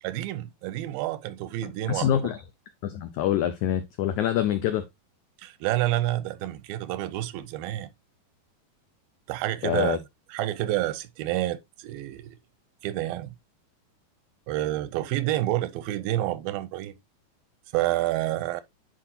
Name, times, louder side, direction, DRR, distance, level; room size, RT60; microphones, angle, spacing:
voice 1, 0.0-2.1 5.4-7.9 9.3-10.0 10.3-12.4 12.8-13.3 14.5-16.9 17.7-18.6, right 15 dB, 90° right, 2.4 m, -29 dB
voice 2, 1.9-2.4 2.8-4.8 9.6-10.0, left 10 dB, 80° left, 1.7 m, -25 dB
10.0 x 4.6 x 2.8 m
omnidirectional pair, 4.2 m